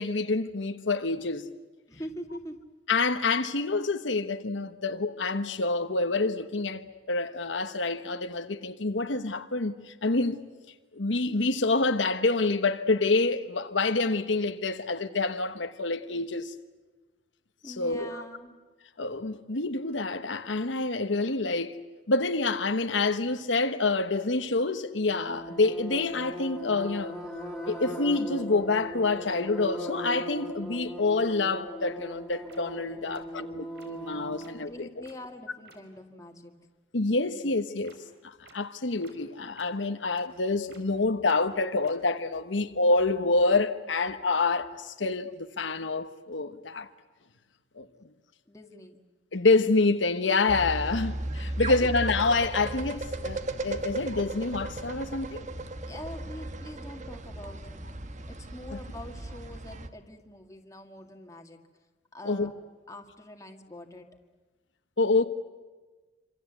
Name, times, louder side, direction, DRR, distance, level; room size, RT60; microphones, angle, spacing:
voice 1, 0.0-1.5 2.9-10.4 10.9-16.5 17.8-18.2 19.0-21.8 22.1-27.1 27.7-34.9 36.9-37.9 38.2-46.9 47.8-47.9 49.3-55.4 62.2-62.5 65.0-65.2, left 3 dB, 85° left, 1.2 m, -27 dB
voice 2, 1.9-2.6 17.6-18.5 32.9-33.7 34.3-36.5 48.5-49.0 51.8-51.9 55.9-57.9 58.3-61.6 62.1-64.1, left 1 dB, 20° left, 2.0 m, -44 dB
sound 1, 25.1-34.7, equal, 5° right, 3.8 m, -39 dB
sound 2, 31.9-32.0 32.5-32.6 33.1-33.2 33.8-33.9 34.4-34.5 35.0-35.1 35.7-35.8 37.8-38.0 38.4-38.5 39.0-39.1 39.6-39.7 40.1-40.2 40.7-40.8 41.2-41.4 41.8-41.9, right 3 dB, 65° right, 4.5 m, -54 dB
sound 3, 50.5-59.9, right 2 dB, 40° right, 1.3 m, -36 dB
26.5 x 26.0 x 8.2 m
head